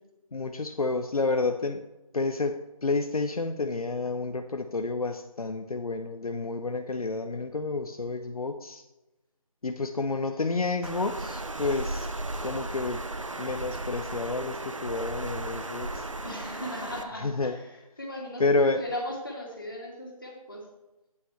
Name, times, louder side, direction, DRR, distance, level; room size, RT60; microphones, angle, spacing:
voice 1, 0.3-1.8 2.1-8.8 9.6-12.1 12.4-13.0 13.4-16.0 17.2-17.6 18.4-18.8, left 3 dB, 75° left, 6 dB, 0.6 m, -29 dB
voice 2, 10.3-10.7 16.2-20.6, left 1 dB, 35° left, -2 dB, 2.0 m, -38 dB
Water, 10.8-17.0, right 2 dB, 60° right, 0.7 m, -35 dB
8.3 x 8.2 x 3.2 m, 0.99 s
figure-of-eight pair, 180°, 19 cm